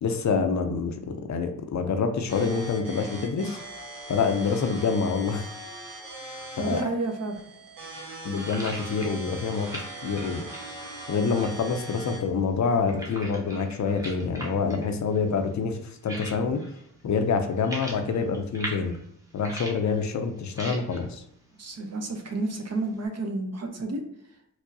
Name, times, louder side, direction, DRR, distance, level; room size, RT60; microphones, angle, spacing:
voice 1, 0.0-3.6 4.1-5.5 6.6-6.8 8.2-10.5 11.1-16.6 17.0-19.0 19.3-21.2, left 5 dB, 60° left, 6 dB, 0.5 m, -27 dB
sound 1, 2.3-12.3, right 1 dB, 85° right, 1.0 m, -40 dB
voice 2, 6.6-7.4 21.6-24.0, right 2 dB, 50° right, 4 dB, 0.7 m, -30 dB
sound 2, 7.3-23.1, right 1 dB, 10° right, 0.8 m, -43 dB
4.6 x 2.0 x 2.7 m, 0.75 s
cardioid pair, 65°, 33 cm